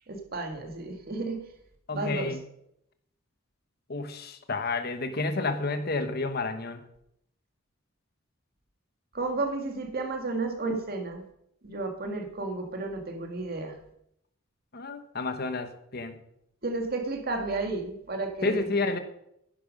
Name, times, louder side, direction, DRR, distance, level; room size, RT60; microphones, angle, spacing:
voice 1, 0.1-1.4 1.9-2.3 9.1-11.2 11.6-13.7 16.6-18.6, right 3 dB, 50° right, 3 dB, 1.9 m, -32 dB
voice 2, 1.9-2.4 3.9-6.8 14.7-16.2 18.4-19.0, left 3 dB, 50° left, 8 dB, 1.2 m, -30 dB
10.5 x 10.0 x 5.3 m, 0.77 s
head